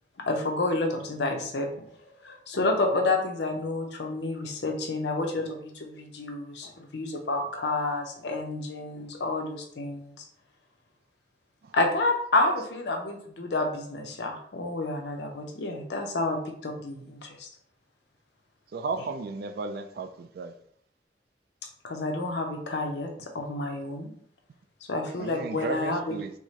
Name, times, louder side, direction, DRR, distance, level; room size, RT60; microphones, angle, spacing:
voice 1, 0.3-1.8 2.2-10.1 11.7-17.5 19.0-19.1 21.8-24.1 24.9-26.1, left 2 dB, 70° left, 3 dB, 0.6 m, -29 dB
voice 2, 18.7-20.5 25.2-26.3, right 4 dB, 60° right, 10 dB, 0.3 m, -34 dB
4.6 x 2.1 x 2.8 m, 0.66 s
head